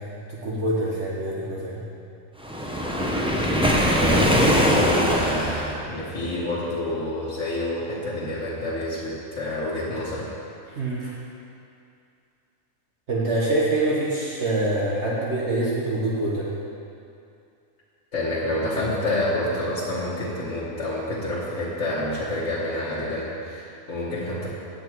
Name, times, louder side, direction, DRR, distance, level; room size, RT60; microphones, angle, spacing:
voice 1, 0.0-1.8 10.7-11.1 13.1-16.5, right 2 dB, 55° right, -6 dB, 1.4 m, -25 dB
Waves surf, 2.4-5.8, equal, 5° right, 0.4 m, -21 dB
voice 2, 3.7-10.3 18.1-24.5, left 1 dB, 60° left, -9 dB, 1.6 m, -28 dB
8.8 x 7.8 x 4.6 m, 2.5 s
omnidirectional pair, 1.4 m